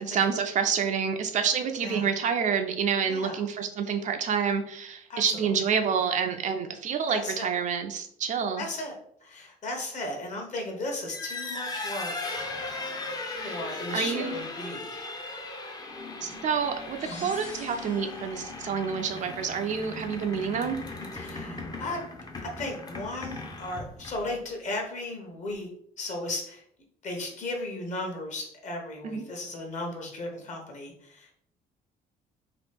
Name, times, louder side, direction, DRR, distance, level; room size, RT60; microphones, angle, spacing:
voice 1, 0.0-8.6 13.4-14.4 16.2-20.8 29.0-29.2, right 6 dB, 45° right, 6 dB, 0.4 m, -28 dB
voice 2, 3.1-3.4 5.1-5.5 7.1-7.5 8.6-8.9 9.2-12.1 13.4-15.2 17.1-17.3 21.1-22.0 22.6-25.7 26.0-26.6 27.0-31.3, left 2 dB, 45° left, 1 dB, 1.0 m, -35 dB
sound 1, 11.0-24.4, left 3 dB, 25° left, 0.5 m, -38 dB
sound 2, 17.0-18.4, left 2 dB, 85° left, 1.3 m, -47 dB
2.9 x 2.4 x 3.3 m, 0.67 s
cardioid pair, 110°, 17 cm